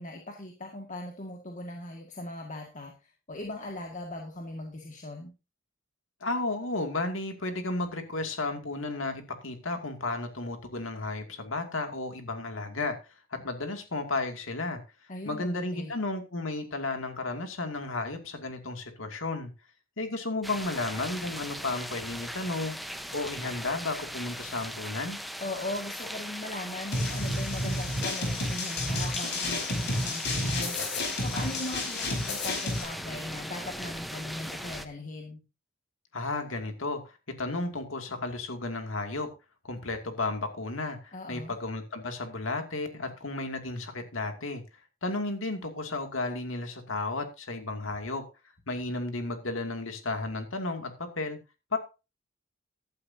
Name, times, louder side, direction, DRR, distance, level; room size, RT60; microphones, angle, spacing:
voice 1, 0.0-5.3 15.1-15.9 25.4-35.4 41.1-41.6, left 1 dB, 40° left, 2 dB, 2.0 m, -39 dB
voice 2, 6.2-13.0 13.3-14.8 15.3-19.5 20.0-22.8 23.1-25.2 36.1-39.3 39.6-44.6 45.0-48.2 48.7-51.4 51.7-51.8, left 2 dB, 80° left, 6 dB, 2.5 m, -33 dB
sound 1, 20.4-34.9, equal, ahead, 1.0 m, -39 dB
sound 2, 26.9-32.8, left 2 dB, 60° left, 5.0 m, -31 dB
14.5 x 11.5 x 2.8 m, 0.29 s
head